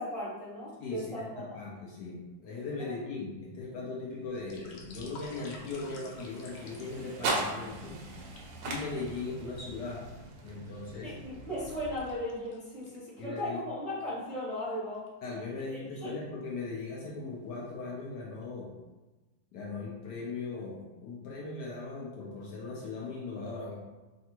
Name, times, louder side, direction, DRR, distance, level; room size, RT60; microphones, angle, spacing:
voice 1, 0.0-1.6 2.8-2.9 11.0-15.1 15.7-16.1, left 1 dB, 30° right, -12 dB, 0.7 m, -37 dB
voice 2, 0.8-8.0 8.6-10.0 10.4-11.1 13.2-13.6 15.2-18.7 19.5-23.7, left 3 dB, 70° left, -4 dB, 1.1 m, -39 dB
sound 1, 4.2-7.8 8.3-8.5 9.2-10.0 10.5-13.4 13.7-13.8 14.3-14.4 14.8-15.1 15.9-16.4 17.0-17.2 17.5-18.1 18.4-18.5, left 3 dB, 90° left, 1.4 m, -53 dB
sound 2, 4.2-12.5, right 2 dB, 75° right, 1.2 m, -40 dB
3.4 x 2.5 x 2.8 m, 1.2 s
omnidirectional pair, 2.1 m